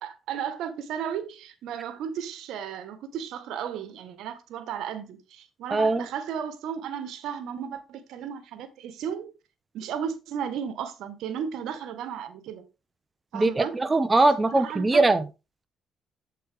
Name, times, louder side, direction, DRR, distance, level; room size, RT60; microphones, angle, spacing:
voice 1, 0.0-9.3 9.7-12.6 13.3-13.8 14.5-15.0, right 8 dB, 85° right, 1.6 m, -34 dB
voice 2, 5.7-6.1 13.3-15.2, right 2 dB, 20° right, 1.2 m, -21 dB
8.4 x 7.8 x 3.7 m
cardioid pair, 90°, 0 cm